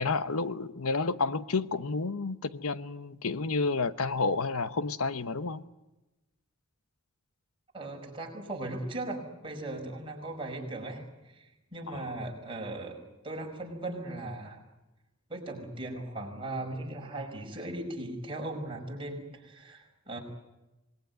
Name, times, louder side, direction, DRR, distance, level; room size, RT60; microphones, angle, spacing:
voice 1, 0.0-5.6 11.9-12.2, left 4 dB, 80° left, 1.0 m, -30 dB
voice 2, 7.7-14.6 15.3-20.2, right 2 dB, 25° right, 5.3 m, -38 dB
26.5 x 20.0 x 9.4 m
head